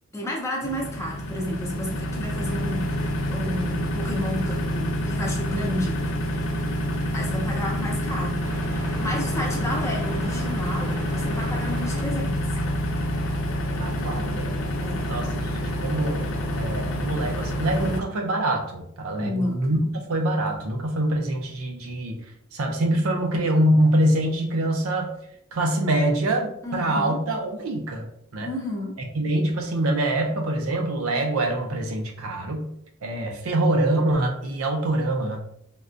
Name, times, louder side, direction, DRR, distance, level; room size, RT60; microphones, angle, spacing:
voice 1, 0.1-6.0 7.1-8.4 8.7-12.4 14.8-15.2 19.2-19.6 26.6-27.2 28.4-28.9, left 1 dB, 15° left, -2 dB, 0.6 m, -31 dB
sound 1, 0.6-18.0, equal, 65° left, 0.5 m, -27 dB
sound 2, 8.4-12.0, equal, 90° right, 1.0 m, -37 dB
voice 2, 13.8-14.5 15.1-16.2 16.5-19.8 20.1-22.2 22.5-25.1 25.5-28.1 28.3-28.5 29.1-32.7 33.0-35.4, right 1 dB, 75° right, 2 dB, 0.5 m, -24 dB
3.5 x 2.3 x 2.5 m, 0.71 s
head